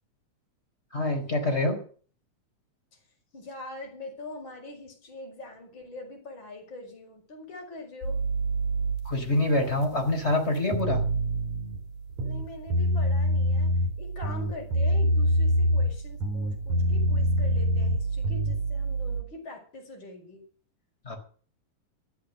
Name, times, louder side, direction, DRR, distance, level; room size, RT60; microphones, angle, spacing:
voice 1, 0.9-1.8 9.0-11.0 21.0-21.2, left 1 dB, 20° left, 4 dB, 4.8 m, -26 dB
voice 2, 3.3-8.2 12.2-13.7 14.0-20.4, left 2 dB, 40° left, 1 dB, 5.7 m, -43 dB
sound 1, 8.0-19.2, right 5 dB, 85° left, 3.0 m, -33 dB
sound 2, 10.7-11.8 12.1-13.9 14.2-15.9 16.2-18.6, left 1 dB, 75° right, 5.3 m, -25 dB
14.5 x 12.5 x 6.6 m, 0.43 s
omnidirectional pair, 3.4 m